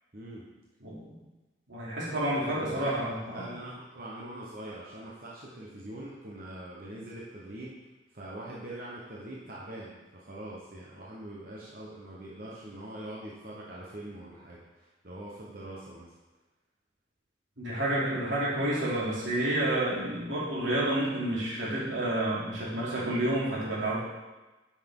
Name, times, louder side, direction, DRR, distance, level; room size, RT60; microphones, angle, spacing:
voice 1, 0.1-0.5 2.6-7.8 8.1-16.1, right 1 dB, 50° right, -5 dB, 1.1 m, -43 dB
voice 2, 1.7-3.4 17.6-24.0, right 1 dB, 90° right, -7 dB, 2.9 m, -29 dB
8.6 x 5.9 x 3.7 m, 1.1 s
head